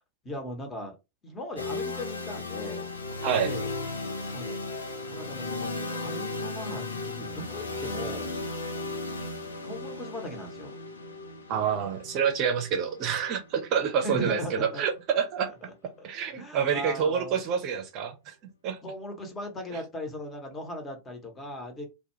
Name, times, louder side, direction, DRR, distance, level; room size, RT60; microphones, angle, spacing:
voice 1, 0.2-1.0 1.2-2.9 3.4-3.7 4.3-4.6 5.0-8.3 9.6-10.8 14.0-14.8 15.5-17.4 18.7-21.9, equal, 20° left, 0.9 m, -38 dB
sound 1, 1.6-15.4, left 3 dB, 75° left, 0.5 m, -36 dB
voice 2, 11.5-15.5 16.0-18.3 18.6-18.8 19.7-19.8, right 7 dB, 40° right, 0.6 m, -27 dB
2.2 x 2.2 x 3.0 m
figure-of-eight pair, 90°, 0 cm